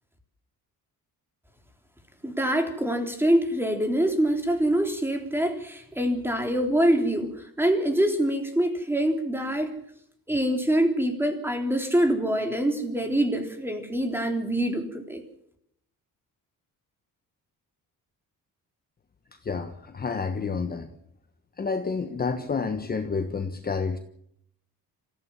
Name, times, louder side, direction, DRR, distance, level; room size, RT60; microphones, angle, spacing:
voice 1, 2.2-9.8 10.3-15.2, right 1 dB, 5° right, 5 dB, 3.8 m, -25 dB
voice 2, 19.5-20.9 21.6-24.0, left 5 dB, 25° left, 7 dB, 1.3 m, -29 dB
25.5 x 15.5 x 7.5 m, 0.72 s
cardioid pair, 140°, 34 cm